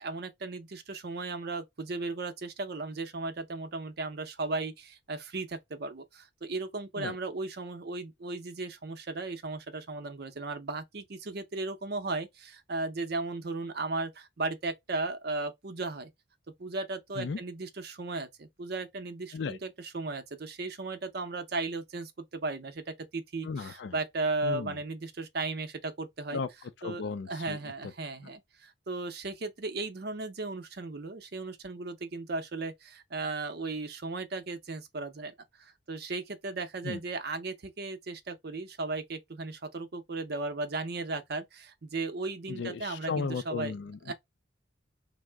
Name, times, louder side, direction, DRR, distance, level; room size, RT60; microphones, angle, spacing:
voice 1, 0.0-4.7 5.1-5.5 5.8-6.0 6.5-12.3 12.7-14.1 14.4-16.1 16.6-18.3 18.6-22.1 22.4-22.7 23.1-23.5 23.9-25.7 26.0-26.4 26.8-27.0 27.3-28.4 28.9-32.7 33.1-35.3 35.9-41.4 41.9-43.7 44.1-44.2, right 3 dB, 55° right, 0.6 m, -35 dB
voice 2, 23.4-24.0 24.4-24.8 26.3-26.5 26.8-27.9 28.2-28.3 36.8-37.0 42.5-44.1, left 5 dB, 60° left, 0.4 m, -35 dB
3.6 x 2.0 x 3.2 m
head